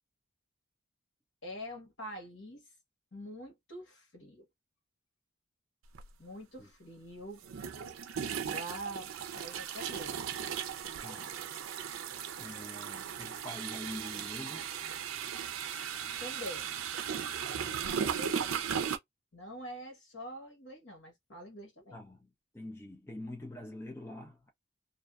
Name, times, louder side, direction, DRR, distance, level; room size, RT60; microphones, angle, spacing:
voice 1, 1.4-2.6 3.1-4.5 6.2-7.4 8.5-10.2 16.2-16.7 17.6-18.5 19.3-22.0, equal, 65° left, 1.2 m, -45 dB
sound 1, 5.9-6.1 7.4-19.0, right 8 dB, 90° right, 0.5 m, -37 dB
voice 2, 11.0-11.4 12.4-14.7 17.8-18.1 21.9-24.5, left 1 dB, 10° left, 0.6 m, -45 dB
2.6 x 2.2 x 2.3 m
head